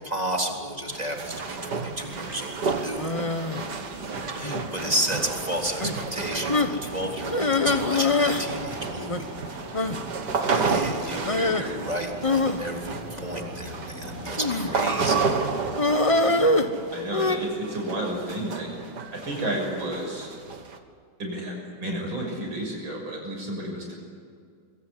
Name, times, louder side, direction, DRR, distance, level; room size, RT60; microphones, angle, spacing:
voice 1, 0.0-3.1 4.3-9.1 10.5-15.2, right 1 dB, 20° right, 1 dB, 3.7 m, -32 dB
sound 1, 0.9-20.8, right 4 dB, 60° right, 2.5 m, -32 dB
sound 2, 3.0-3.6 4.4-4.8 5.1-5.3 5.8-5.9 6.5-6.8 7.3-8.5 8.7-8.8 9.1-9.2 9.7-10.0 11.2-11.6 12.2-13.6 14.4-14.8 15.8-17.4, left 2 dB, 20° left, 1.2 m, -24 dB
voice 2, 3.9-4.6 10.5-10.7 11.1-11.8 16.2-16.6 16.9-18.7 19.1-20.3 21.2-23.9, right 1 dB, 80° right, 0 dB, 7.2 m, -32 dB
sound 3, 4.6-15.3, equal, 35° right, 8.1 m, -41 dB
26.0 x 23.0 x 9.9 m, 2.2 s
omnidirectional pair, 2.1 m